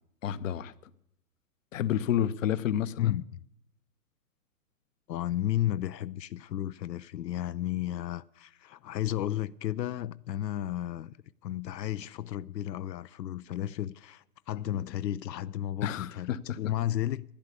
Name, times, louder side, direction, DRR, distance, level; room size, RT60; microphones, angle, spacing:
voice 1, 0.2-0.7 1.7-3.2 14.7-14.8 15.8-16.6, left 10 dB, 55° left, 0.7 m, -30 dB
voice 2, 3.0-3.4 5.1-11.2 11.4-17.2, left 12 dB, 85° left, 0.5 m, -33 dB
12.0 x 9.9 x 8.3 m
hypercardioid pair, 140°, 49 cm